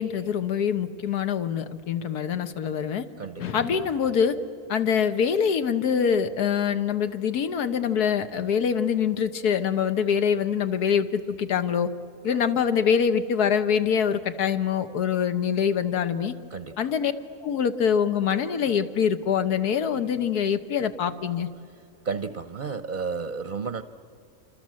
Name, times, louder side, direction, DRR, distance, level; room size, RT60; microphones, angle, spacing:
voice 1, 0.0-3.1 3.4-4.4 4.7-11.9 12.2-16.4 16.8-17.1 17.4-21.5, left 7 dB, 85° left, 10 dB, 1.7 m, -24 dB
voice 2, 22.1-23.8, right 5 dB, 45° right, 11 dB, 0.7 m, -32 dB
27.0 x 26.5 x 7.6 m, 2.4 s
omnidirectional pair, 1.6 m